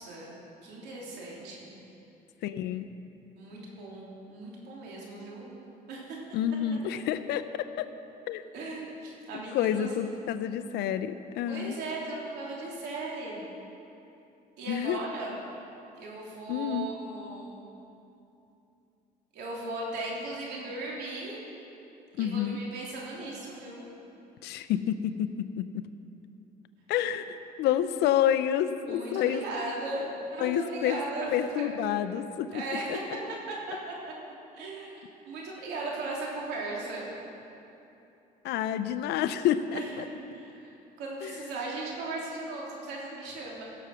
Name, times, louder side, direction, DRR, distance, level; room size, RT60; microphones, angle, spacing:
voice 1, 0.0-1.7 3.3-5.5 5.9-6.2 8.5-9.9 11.5-13.4 14.6-15.3 16.0-17.6 19.3-21.4 22.1-23.9 28.9-31.7 32.5-33.0 33.5-34.1 34.5-37.2 39.7-40.7 41.0-43.6, right 2 dB, 85° right, -4 dB, 3.3 m, -37 dB
voice 2, 2.4-2.8 6.3-7.9 8.3-8.4 9.5-11.8 14.7-15.0 16.5-16.9 22.2-22.6 24.4-25.9 26.9-29.4 30.4-31.0 31.3-32.6 32.9-33.0 38.4-40.0 41.2-41.3, left 10 dB, 80° left, 12 dB, 0.6 m, -29 dB
16.5 x 7.0 x 6.1 m, 2.9 s
cardioid pair, 110°, 17 cm